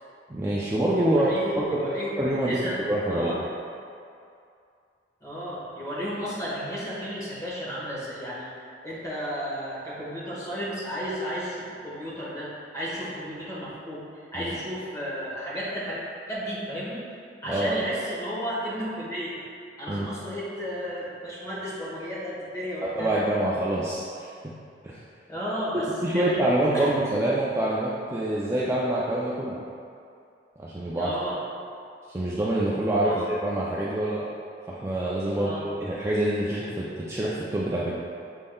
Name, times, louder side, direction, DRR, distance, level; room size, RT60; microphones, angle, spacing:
voice 1, 0.3-1.3 1.6-1.8 2.2-2.6 2.9-3.4 14.3-14.6 17.5-17.8 19.9-20.1 22.8-24.3 24.8-25.0 26.0-29.6 30.6-31.1 32.1-34.3 34.7-38.0, right 1 dB, 15° right, -7 dB, 0.3 m, -26 dB
voice 2, 0.9-2.8 3.1-3.4 5.2-8.5 8.8-16.0 16.3-17.0 17.4-19.4 19.8-23.2 25.3-26.4 26.7-26.9 31.0-31.4 33.0-33.2 35.3-35.8, equal, 20° left, -9 dB, 1.3 m, -33 dB
6.3 x 3.6 x 2.3 m, 2.5 s
head